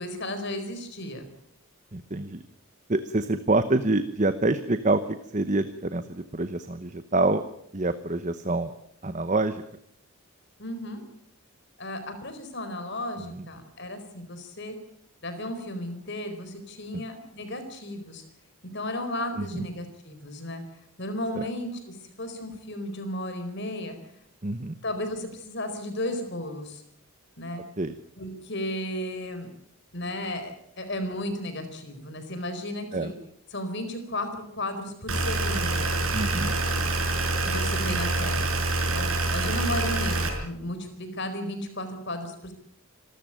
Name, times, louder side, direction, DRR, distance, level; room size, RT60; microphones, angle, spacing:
voice 1, 0.0-1.3 10.6-11.0 11.8-14.8 15.2-18.2 18.7-20.6 21.0-23.9 24.8-26.8 27.4-27.6 28.2-29.5 29.9-33.1 33.5-35.9 36.6-36.8 37.4-38.5 38.9-42.5, left 1 dB, 50° left, 8 dB, 4.4 m, -34 dB
voice 2, 1.9-2.4 2.9-7.4 7.7-8.7 9.0-9.6 13.2-13.5 16.9-17.0 19.4-19.7 21.4-21.5 24.4-24.7 27.8-28.0 32.9-33.1 36.1-36.6 37.9-38.0, right 2 dB, 35° right, 11 dB, 1.0 m, -27 dB
sound 1, 35.1-40.3, right 2 dB, 75° right, 5.4 m, -26 dB
26.5 x 13.5 x 9.0 m, 0.74 s
head